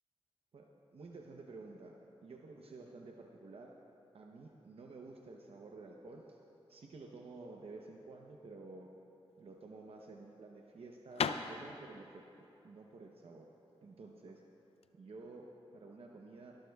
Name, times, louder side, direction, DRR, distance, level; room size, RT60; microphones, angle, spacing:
voice 1, 0.5-2.0 2.2-3.7 4.1-6.4 6.7-8.9 9.4-13.5 13.8-14.4 15.0-15.5 15.7-16.6, right 3 dB, 75° right, 0 dB, 0.8 m, -52 dB
sound 1, 9.3-14.9, left 6 dB, 90° left, 0.4 m, -41 dB
24.5 x 13.0 x 2.3 m, 3.0 s
wide cardioid pair, 110°, 10 cm